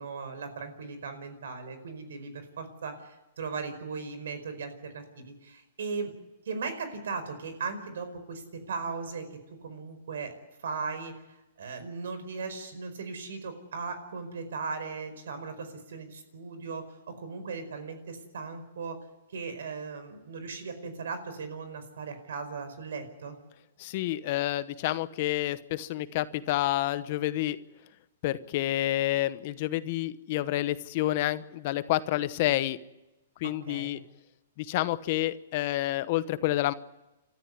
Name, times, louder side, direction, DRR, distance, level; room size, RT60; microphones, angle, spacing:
voice 1, 0.0-6.1 6.4-9.3 9.6-10.3 10.6-19.0 19.3-23.4 33.4-34.0, right 4 dB, 80° right, 10 dB, 4.9 m, -38 dB
voice 2, 23.8-27.6 28.2-32.8 33.4-34.0 34.6-36.7, left 15 dB, 45° left, 14 dB, 1.0 m, -29 dB
29.5 x 13.5 x 9.7 m, 1.0 s
hypercardioid pair, 150°, 0 cm